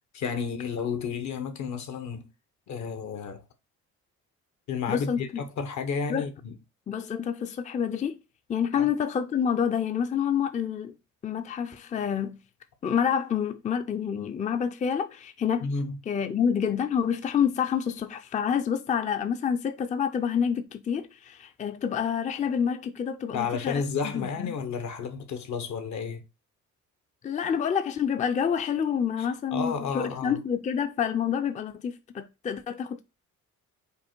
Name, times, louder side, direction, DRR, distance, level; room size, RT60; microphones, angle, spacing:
voice 1, 0.1-2.3 2.7-3.4 4.7-6.6 8.8-8.9 15.6-16.0 23.3-26.2 29.2-30.4, left 5 dB, 70° left, 0.9 m, -32 dB
voice 2, 4.9-5.4 6.1-6.3 6.9-8.2 8.5-10.9 11.2-12.4 12.8-15.7 16.1-24.5 27.2-33.0, left 7 dB, 25° left, 0.4 m, -28 dB
5.2 x 2.2 x 4.4 m
cardioid pair, 90°, 30 cm